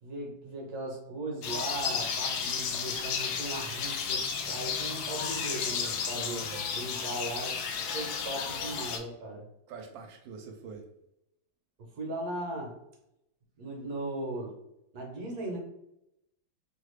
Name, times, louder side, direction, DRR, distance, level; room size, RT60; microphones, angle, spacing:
voice 1, 0.0-6.5 6.7-7.6 7.9-9.4 11.8-12.7 13.6-14.5 14.9-15.6, right 1 dB, 60° right, 0 dB, 1.2 m, -38 dB
sound 1, 1.4-9.0, left 6 dB, 75° left, 0.9 m, -33 dB
voice 2, 6.1-6.8 9.7-10.8, right 5 dB, 80° right, 4 dB, 1.3 m, -44 dB
3.2 x 2.3 x 3.1 m, 0.82 s
omnidirectional pair, 2.1 m